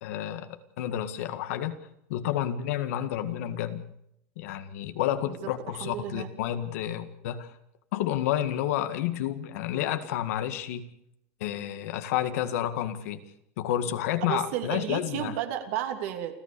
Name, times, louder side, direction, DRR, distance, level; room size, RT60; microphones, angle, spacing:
voice 1, 0.0-1.8 2.1-3.9 4.4-7.5 7.9-10.9 11.4-13.2 13.6-15.4, left 11 dB, 80° left, 9 dB, 1.9 m, -30 dB
voice 2, 5.7-6.3 14.3-16.3, right 11 dB, 70° right, 5 dB, 2.8 m, -32 dB
29.5 x 13.0 x 6.9 m, 0.77 s
supercardioid pair, 155°, 8 cm